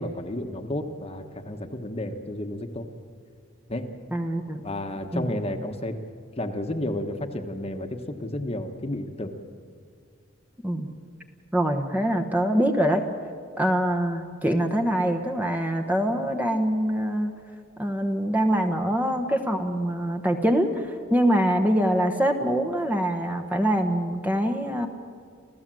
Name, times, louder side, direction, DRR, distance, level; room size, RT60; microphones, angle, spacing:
voice 1, 0.0-2.9 3.7-3.9 4.6-6.0 6.4-9.3, left 1 dB, 30° left, 6 dB, 1.2 m, -32 dB
voice 2, 4.1-4.6 5.1-5.3 10.6-10.9 11.5-13.0 13.6-17.3 17.8-24.9, equal, 10° right, 4 dB, 1.1 m, -24 dB
28.5 x 14.5 x 7.7 m, 2.2 s
head